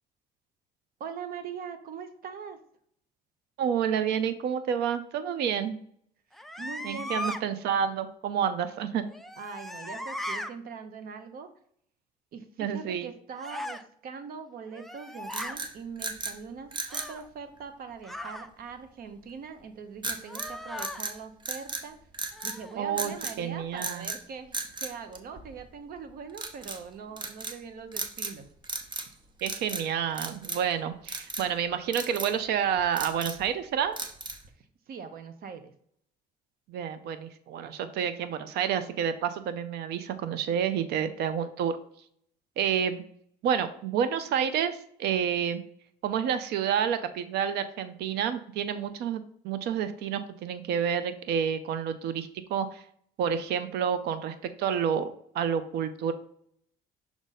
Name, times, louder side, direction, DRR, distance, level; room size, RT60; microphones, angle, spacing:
voice 1, 1.0-2.6 6.6-7.4 9.4-11.5 12.3-22.0 22.4-28.5 34.9-35.7, right 6 dB, 60° right, 9 dB, 0.9 m, -42 dB
voice 2, 3.6-5.8 6.8-9.1 12.6-13.1 22.8-24.0 29.4-34.0 36.7-41.8 42.6-43.0 43.4-45.6 46.0-52.8 53.2-56.1, right 8 dB, 75° right, 12 dB, 0.6 m, -29 dB
sound 1, 6.3-7.4 9.1-10.5 13.4-13.8 14.7-15.6 16.9-17.3 18.0-18.5 20.2-21.0 22.3-22.8, left 1 dB, ahead, 0.4 m, -38 dB
sound 2, 15.3-16.4 16.7-17.1 20.0-20.5 20.8-21.9 22.1-22.6 23.0-23.4 23.8-24.2 24.5-25.7 26.3-26.8 27.2-27.6 27.9-28.4 28.6-29.1 29.4-29.9 30.2-30.7 31.1-31.5 31.9-32.3 32.8-33.5 34.0-34.5, right 3 dB, 25° right, 0.9 m, -36 dB
6.0 x 3.9 x 4.1 m, 0.65 s
cardioid pair, 110°, 17 cm